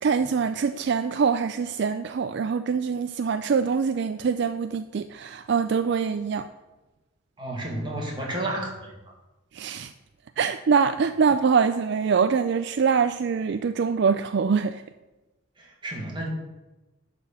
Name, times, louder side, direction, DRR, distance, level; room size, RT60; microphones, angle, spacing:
voice 1, 0.0-6.5 9.5-9.9 10.4-14.8, right 6 dB, 60° right, 10 dB, 0.4 m, -24 dB
voice 2, 7.4-8.9 15.6-16.3, right 1 dB, 25° right, -2 dB, 2.3 m, -31 dB
11.5 x 4.3 x 7.2 m, 1.1 s
head